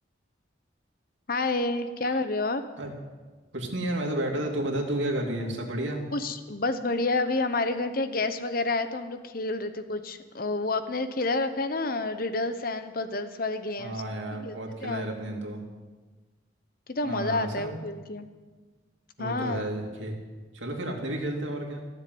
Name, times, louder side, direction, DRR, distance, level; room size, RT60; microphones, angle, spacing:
voice 1, 1.3-2.6 6.1-14.0 14.4-14.5 14.8-15.1 16.9-18.3 19.2-19.7, left 2 dB, 50° left, 10 dB, 0.9 m, -29 dB
voice 2, 3.5-6.0 13.8-15.6 17.0-17.7 19.2-20.1 20.5-21.8, right 1 dB, 75° right, 0 dB, 2.7 m, -31 dB
16.0 x 7.3 x 9.4 m, 1.3 s
head